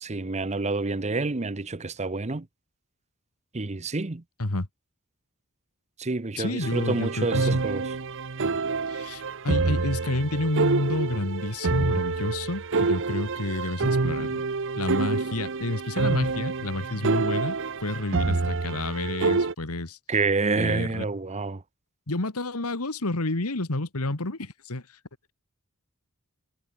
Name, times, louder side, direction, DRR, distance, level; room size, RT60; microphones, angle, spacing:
voice 1, 0.0-2.5 3.5-4.2 6.0-7.9 20.1-21.6, right 3 dB, 30° right, 0.9 m, -28 dB
voice 2, 6.4-7.6 8.9-14.4 14.8-20.0 20.6-21.1 22.1-24.8, left 2 dB, 75° left, 1.9 m, -30 dB
sound 1, 6.6-19.5, right 3 dB, 60° right, 1.0 m, -27 dB
head